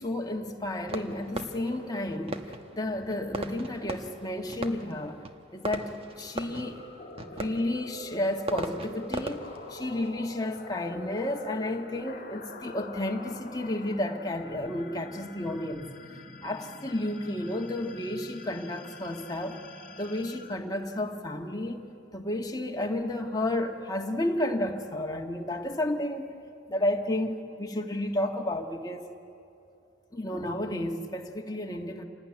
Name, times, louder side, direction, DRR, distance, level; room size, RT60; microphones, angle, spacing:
voice 1, 0.0-5.2 5.5-5.9 6.2-6.8 7.3-15.9 16.4-19.6 20.0-21.8 22.1-26.3 26.7-29.1 30.1-32.0, left 1 dB, 20° left, 2 dB, 1.7 m, -32 dB
Fireworks, 0.9-11.5, right 1 dB, 30° right, 1.3 m, -40 dB
sound 1, 6.3-21.5, left 2 dB, 45° left, 1.9 m, -46 dB
27.5 x 18.0 x 10.0 m, 2.7 s
head